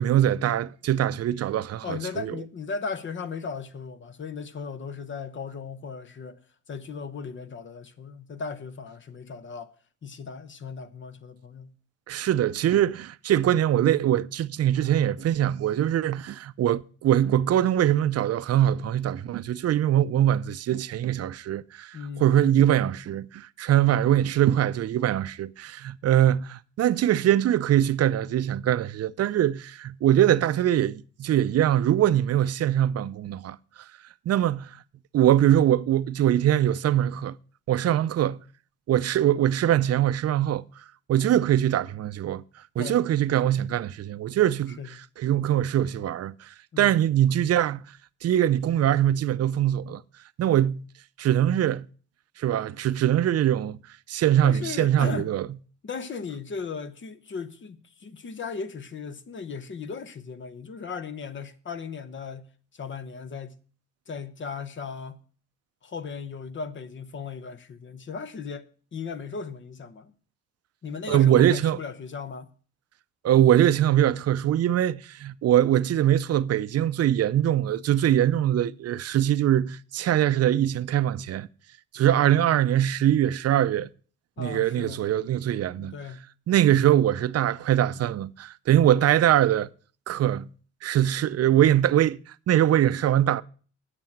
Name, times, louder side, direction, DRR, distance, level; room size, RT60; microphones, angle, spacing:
voice 1, 0.0-2.3 12.1-33.6 34.3-34.7 35.1-37.4 37.7-38.4 38.9-40.6 41.1-42.4 42.8-44.8 45.2-46.5 46.8-47.8 48.2-50.0 50.4-50.8 51.2-51.9 52.4-53.8 54.1-55.5 71.1-71.8 73.2-81.5 81.9-83.9 84.4-85.9 86.5-89.7 90.1-90.5 90.8-92.2 92.5-93.4, right 11 dB, 55° right, 0.5 m, -22 dB
voice 2, 1.8-6.4 6.7-9.7 10.0-11.7 21.9-22.4 42.8-43.0 43.4-43.6 44.8-44.9 46.7-47.0 54.4-55.3 55.8-63.6 64.1-65.2 65.8-70.1 70.8-72.5 84.4-85.1 85.7-86.3, left 5 dB, 40° left, 1.0 m, -37 dB
9.1 x 6.8 x 7.1 m
cardioid pair, 90°, 30 cm